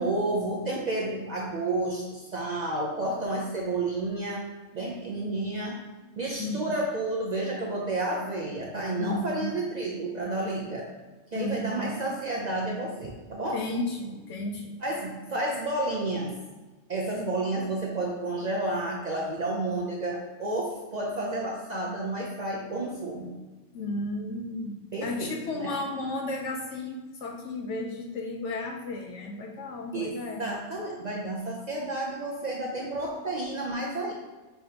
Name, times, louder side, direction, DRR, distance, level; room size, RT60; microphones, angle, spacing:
voice 1, 0.0-4.4 4.7-5.8 6.2-10.9 11.3-13.6 14.8-16.4 16.9-23.4 24.9-25.7 29.9-34.1, right 2 dB, 65° right, -3 dB, 0.4 m, -31 dB
voice 2, 6.4-6.7 9.0-9.5 10.4-10.6 11.3-12.0 13.5-14.7 23.7-30.5, left 2 dB, 65° left, 2 dB, 0.7 m, -34 dB
5.6 x 3.4 x 2.8 m, 1.2 s
omnidirectional pair, 1.6 m